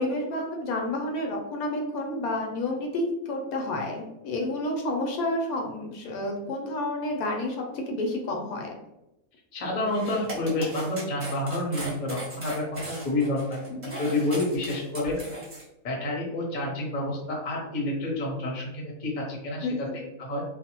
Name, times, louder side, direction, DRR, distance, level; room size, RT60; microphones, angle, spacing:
voice 1, 0.0-8.7 13.7-14.0 19.6-19.9, left 1 dB, 85° left, 1 dB, 1.1 m, -30 dB
voice 2, 9.5-15.2 15.8-19.9 20.2-20.4, left 2 dB, 40° left, -2 dB, 0.7 m, -29 dB
sound 1, 9.9-15.6, right 2 dB, 35° right, 1.0 m, -38 dB
2.6 x 2.1 x 2.9 m, 0.92 s
omnidirectional pair, 1.5 m